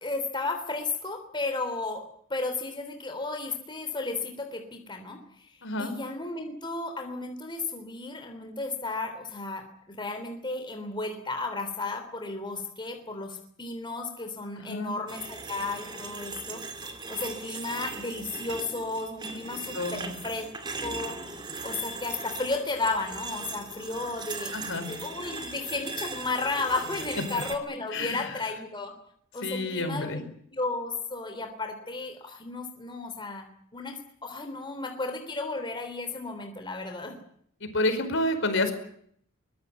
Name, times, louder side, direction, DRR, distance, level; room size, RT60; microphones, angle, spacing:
voice 1, 0.0-2.0 2.3-5.5 5.8-16.6 17.1-20.5 20.8-21.2 21.6-24.5 24.9-28.9 29.3-30.2 30.5-37.2, left 3 dB, 20° left, 5 dB, 3.3 m, -33 dB
voice 2, 5.6-6.0 14.6-15.0 19.7-20.1 24.5-24.9 27.9-28.4 29.4-30.2 37.6-38.7, left 2 dB, 60° left, 8 dB, 5.0 m, -29 dB
sound 1, 15.1-27.6, right 3 dB, 20° right, 2.6 m, -39 dB
23.5 x 20.5 x 8.2 m, 0.66 s
head